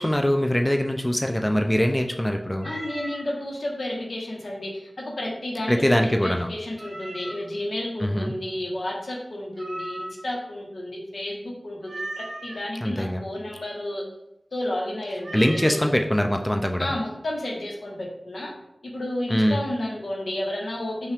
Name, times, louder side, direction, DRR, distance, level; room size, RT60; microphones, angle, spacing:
voice 1, 0.0-2.7 5.7-6.5 8.0-8.3 12.8-13.2 15.3-16.9 19.3-19.6, equal, 15° left, 4 dB, 0.3 m, -22 dB
voice 2, 2.6-14.0 14.5-15.9 16.8-18.5 18.8-21.1, left 1 dB, 80° left, -2 dB, 0.9 m, -31 dB
Meow, 2.6-3.3 6.8-7.6 9.6-10.4 11.9-12.6 15.2-15.9, right 1 dB, 80° right, 0.6 m, -37 dB
5.4 x 2.4 x 3.4 m, 0.87 s
wide cardioid pair, 65°, 0 cm